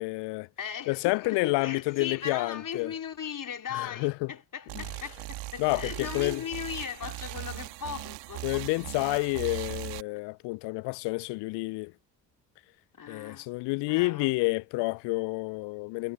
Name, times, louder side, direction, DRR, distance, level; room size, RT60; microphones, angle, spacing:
voice 1, 0.0-0.5 0.9-2.9 3.7-4.3 4.8-4.9 5.6-6.4 8.4-11.9 13.1-16.1, left 26 dB, 60° left, 0.7 m, -29 dB
voice 2, 0.6-8.9 13.0-13.5 13.9-14.3, left 8 dB, 40° left, 3.4 m, -38 dB
sound 1, 4.7-10.0, right 21 dB, 65° right, 2.1 m, -39 dB
figure-of-eight pair, 45°, 48 cm